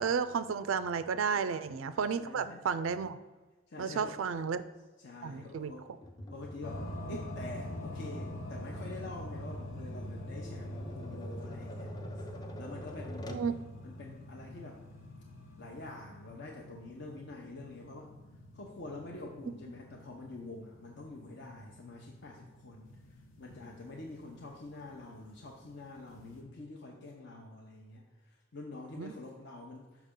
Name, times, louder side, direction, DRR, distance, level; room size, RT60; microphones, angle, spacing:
voice 1, 0.0-3.2 3.8-4.6 5.2-5.7 13.3-13.5 29.0-29.1, right 6 dB, 85° right, 13 dB, 0.4 m, -32 dB
voice 2, 2.2-2.6 3.7-4.2 5.0-6.0 6.3-13.3 13.8-14.8 15.6-18.1 18.5-30.1, left 2 dB, 60° left, -1 dB, 0.7 m, -47 dB
Tap, 6.0-13.5, left 1 dB, 20° left, 0.5 m, -48 dB
sound 1, 6.6-26.4, left 1 dB, 85° left, 0.9 m, -45 dB
6.0 x 5.5 x 3.7 m, 1.2 s
head